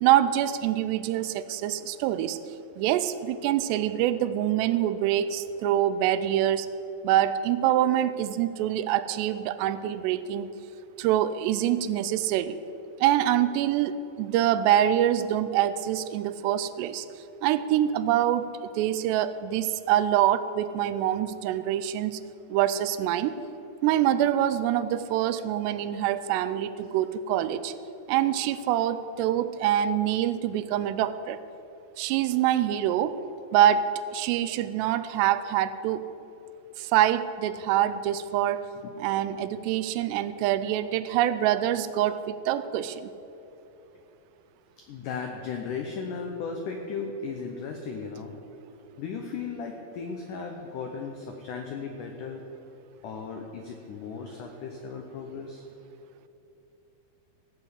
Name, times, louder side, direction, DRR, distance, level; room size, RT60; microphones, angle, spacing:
voice 1, 0.0-2.4 2.8-6.7 7.0-10.5 11.0-12.6 13.0-17.1 17.4-22.2 22.5-23.4 23.8-27.7 28.1-31.4 32.0-33.1 33.5-36.1 36.8-38.7 39.0-43.1, right 11 dB, 85° right, 13 dB, 2.7 m, -25 dB
voice 2, 44.8-48.3 49.0-52.4 53.0-55.6, left 5 dB, 90° left, 3 dB, 1.8 m, -36 dB
16.0 x 5.8 x 8.1 m, 2.9 s
omnidirectional pair, 4.9 m